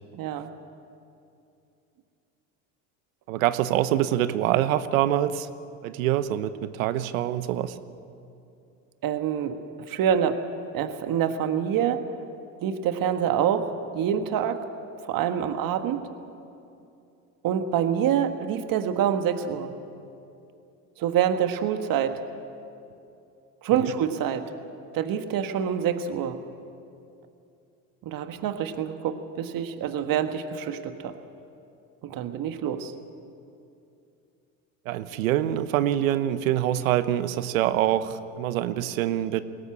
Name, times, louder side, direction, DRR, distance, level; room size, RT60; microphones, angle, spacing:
voice 1, 0.2-0.5 9.0-10.4 10.7-12.1 12.6-14.6 15.0-16.0 17.4-19.7 21.0-22.2 23.6-24.5 24.9-26.4 28.0-31.2 32.0-32.9, right 9 dB, 55° right, 8 dB, 1.6 m, -26 dB
voice 2, 3.3-5.5 5.8-7.8 23.8-23.9 34.8-39.4, right 12 dB, 90° right, 13 dB, 1.0 m, -25 dB
21.5 x 18.0 x 8.7 m, 2.6 s
supercardioid pair, 85°, 39 cm